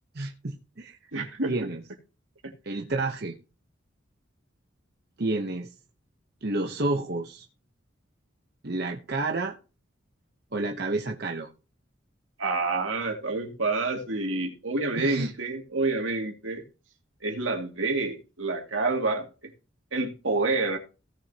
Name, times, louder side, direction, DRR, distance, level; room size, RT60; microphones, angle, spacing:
voice 1, 0.1-1.1 1.5-1.8 2.7-3.4 5.2-5.7 6.4-7.5 8.6-9.5 10.5-11.5 15.0-15.3, right 2 dB, 50° right, 0.9 m, -30 dB
voice 2, 1.1-1.5 12.4-16.6 17.2-19.3 19.9-20.8, right 3 dB, 80° right, 2.3 m, -28 dB
17.0 x 6.4 x 2.9 m
head